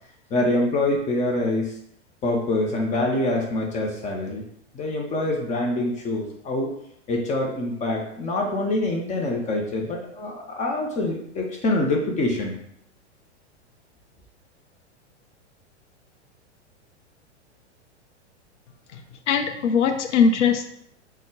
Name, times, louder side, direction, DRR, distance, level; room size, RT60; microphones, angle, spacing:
voice 1, 0.3-1.7 2.2-4.4 4.7-6.7 7.1-12.6, left 2 dB, 20° left, 0 dB, 0.6 m, -25 dB
voice 2, 19.3-20.7, left 6 dB, 80° left, 6 dB, 0.6 m, -20 dB
3.8 x 2.1 x 3.7 m, 0.72 s
hypercardioid pair, 105°, 35 cm